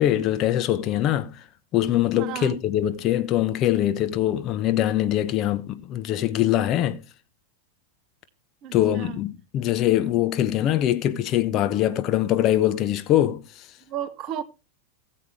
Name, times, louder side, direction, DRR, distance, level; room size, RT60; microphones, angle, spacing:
voice 1, 0.0-1.4 1.7-7.0 8.7-13.7, left 12 dB, 35° left, 0.9 m, -23 dB
voice 2, 2.1-2.6 8.6-9.2 13.9-14.4, right 11 dB, 40° right, 0.8 m, -33 dB
17.5 x 7.6 x 3.3 m
figure-of-eight pair, 90°, 0 cm